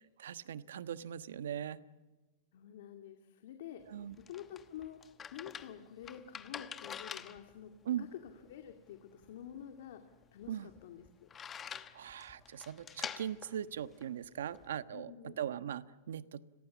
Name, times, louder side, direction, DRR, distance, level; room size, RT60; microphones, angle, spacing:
voice 1, 0.2-1.8 3.9-4.2 7.8-8.1 10.5-10.7 11.6-16.4, right 10 dB, 90° right, 13 dB, 1.2 m, -40 dB
voice 2, 2.5-5.0 5.3-10.0 10.3-11.3 14.9-15.4, left 10 dB, 65° left, 5 dB, 2.4 m, -49 dB
sound 1, 3.8-14.7, left 7 dB, 15° left, 1.0 m, -48 dB
30.0 x 22.0 x 7.3 m, 1.2 s
supercardioid pair, 160°, 0 cm